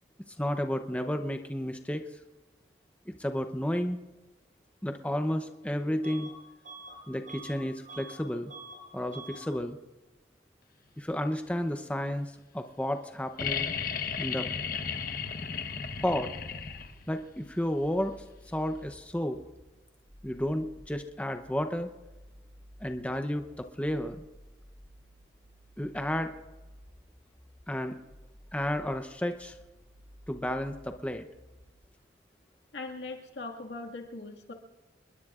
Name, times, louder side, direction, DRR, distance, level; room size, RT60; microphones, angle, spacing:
voice 1, 0.4-2.1 3.1-4.0 4.8-6.3 7.1-8.5 8.9-9.8 11.0-13.7 14.2-14.5 16.0-16.3 17.1-18.2 18.5-19.4 20.2-21.9 22.8-24.2 25.8-26.3 27.7-28.0 28.5-29.6 30.3-31.3, equal, 10° left, 7 dB, 0.7 m, -32 dB
Bus / Alarm, 6.0-6.4 6.6-8.2 8.5-8.8 9.1-9.5, right 2 dB, 50° right, 5.3 m, -46 dB
sound 1, 13.4-17.2 18.9-19.0, left 6 dB, 55° left, 1.1 m, -34 dB
sound 2, 16.6-31.8, equal, 25° right, 7.0 m, -54 dB
voice 2, 32.7-34.5, left 3 dB, 85° left, 2 dB, 1.9 m, -40 dB
28.0 x 21.0 x 2.5 m, 1.1 s
head